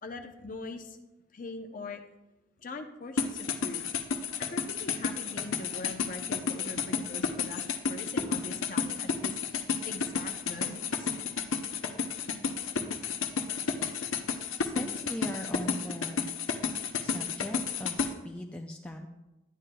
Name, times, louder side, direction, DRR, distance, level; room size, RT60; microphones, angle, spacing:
voice 1, 0.0-1.0 1.3-2.0 2.6-3.8 4.4-11.1, left 2 dB, 40° left, 5 dB, 0.6 m, -42 dB
sound 1, 3.2-18.1, left 6 dB, 80° left, 0.7 m, -31 dB
voice 2, 14.6-16.3 17.0-19.1, left 1 dB, 5° left, 1 dB, 0.3 m, -39 dB
11.0 x 9.1 x 2.3 m, 1.0 s
head